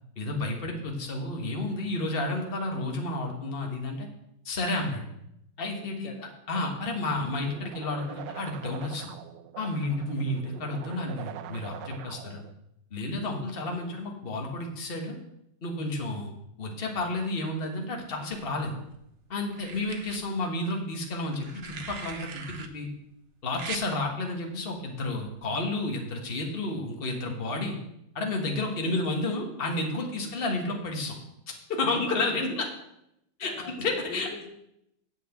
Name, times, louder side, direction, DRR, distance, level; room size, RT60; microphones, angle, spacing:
voice 1, 0.2-4.1 4.4-5.0 5.6-6.1 6.5-9.1 9.6-12.4 12.9-15.2 15.6-16.3 16.6-18.8 19.3-22.9 23.4-27.8 28.1-31.1 31.5-32.7 33.4-33.5 33.8-34.3, left 2 dB, 35° left, 2 dB, 1.6 m, -31 dB
sound 1, 6.5-12.5, right 8 dB, 80° right, 1.2 m, -43 dB
sound 2, 18.3-19.0 19.5-20.2 21.3-22.7 23.5-23.9 25.2-25.4, right 5 dB, 55° right, 0.7 m, -41 dB
voice 2, 28.7-29.4 30.2-30.6 31.9-32.2 33.4-33.8 34.1-34.5, left 5 dB, 75° left, 5 dB, 1.7 m, -45 dB
8.1 x 5.9 x 7.7 m, 0.80 s
omnidirectional pair, 2.0 m